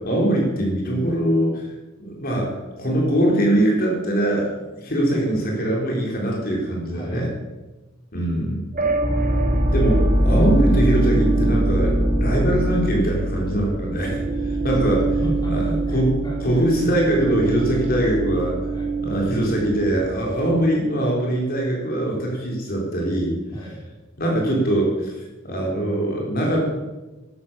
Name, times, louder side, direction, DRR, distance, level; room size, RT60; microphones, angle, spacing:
voice 1, 0.0-1.7 2.0-4.5 4.8-7.3 8.1-8.6 9.7-15.1 15.5-15.6 15.9-16.1 16.4-18.6 19.0-23.3 24.2-25.2 25.4-26.6, right 1 dB, 45° left, -2 dB, 4.0 m, -22 dB
voice 2, 6.9-7.2 15.0-16.6 18.7-18.9 23.5-23.8, equal, 20° left, -3 dB, 3.7 m, -33 dB
ab area atmos, 8.7-20.7, right 1 dB, 40° right, 2.4 m, -22 dB
12.5 x 11.5 x 6.8 m, 1.1 s
head